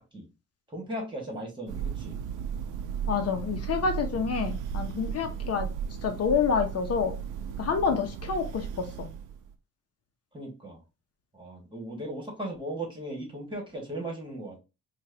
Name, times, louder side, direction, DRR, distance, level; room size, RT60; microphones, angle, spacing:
voice 1, 0.7-2.2 10.3-10.8 11.3-14.6, right 1 dB, 15° right, 0 dB, 2.0 m, -37 dB
Thunder, 1.7-9.5, right 7 dB, 85° right, 0.6 m, -35 dB
voice 2, 3.1-5.7 6.0-7.2 7.6-9.1, left 6 dB, 55° left, 5 dB, 0.8 m, -28 dB
4.5 x 2.5 x 2.9 m, 0.28 s
cardioid pair, 90°, 30 cm